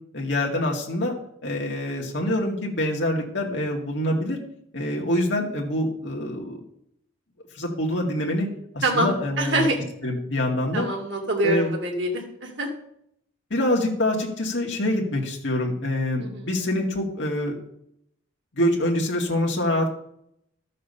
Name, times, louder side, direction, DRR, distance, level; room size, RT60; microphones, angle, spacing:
voice 1, 0.1-1.1 1.4-4.4 4.7-6.6 7.5-8.5 8.7-9.7 10.0-10.9 11.4-11.7 13.5-17.6 18.5-19.9, left 1 dB, 65° left, -1 dB, 2.2 m, -25 dB
voice 2, 9.4-9.8 10.7-12.7 16.2-16.5, right 1 dB, 65° right, 0 dB, 2.5 m, -25 dB
12.5 x 6.6 x 6.9 m, 0.72 s
head